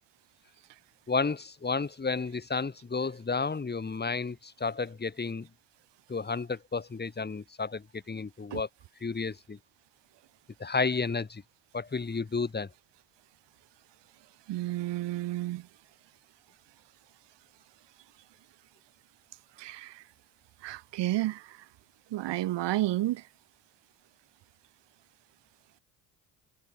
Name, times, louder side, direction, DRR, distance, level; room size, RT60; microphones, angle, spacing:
voice 1, 1.1-5.5 6.1-8.7 9.0-9.6 10.6-11.4 11.7-12.7, left 4 dB, 25° left, 1.8 m, -32 dB
voice 2, 14.5-15.6 19.6-20.0 20.6-21.4 22.1-23.2, right 16 dB, 70° right, 3.6 m, -31 dB
hypercardioid pair, 55°, 44 cm